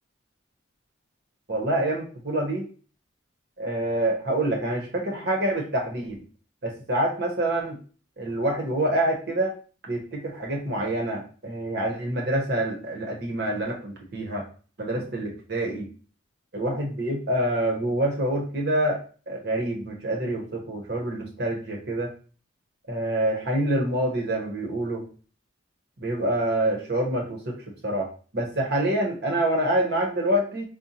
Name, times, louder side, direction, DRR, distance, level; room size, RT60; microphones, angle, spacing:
voice 1, 1.5-2.6 3.6-6.2 6.6-7.8 8.2-9.5 9.9-14.4 14.8-15.9 16.5-19.0 19.3-22.1 22.9-25.0 26.0-28.1 28.3-30.6, right 1 dB, 50° right, 0 dB, 0.9 m, -26 dB
5.0 x 2.2 x 2.8 m, 0.39 s
head